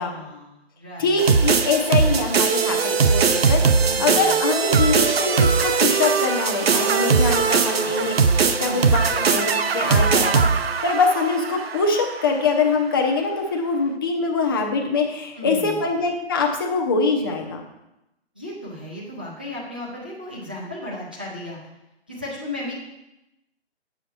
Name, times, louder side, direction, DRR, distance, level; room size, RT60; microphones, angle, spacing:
voice 1, 0.0-1.2 3.8-4.4 7.8-8.1 8.6-8.9 15.3-15.9 18.3-21.6 22.1-22.7, left 1 dB, 10° right, -6 dB, 0.5 m, -35 dB
voice 2, 1.0-8.1 8.4-17.6, left 4 dB, 20° left, 2 dB, 0.7 m, -23 dB
sound 1, 1.2-12.3, right 5 dB, 60° right, 0.8 m, -20 dB
8.5 x 7.1 x 4.3 m, 0.92 s
hypercardioid pair, 160°, 34 cm